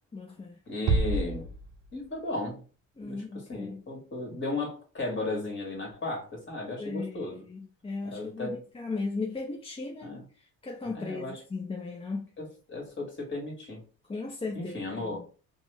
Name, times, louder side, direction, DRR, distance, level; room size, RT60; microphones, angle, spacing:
voice 1, 0.1-0.6 3.0-3.8 6.8-10.1 10.6-12.3 14.1-15.3, left 3 dB, 15° left, 0.5 m, -36 dB
voice 2, 0.7-1.5 1.9-2.6 3.0-3.2 3.5-7.4 8.1-8.6 10.0-10.2 10.9-11.4 12.4-13.8 14.6-15.2, left 2 dB, 35° left, 1.7 m, -35 dB
Bass drum, 0.9-2.3, right 3 dB, 60° right, 0.6 m, -29 dB
3.0 x 2.1 x 3.3 m
cardioid pair, 90°, 34 cm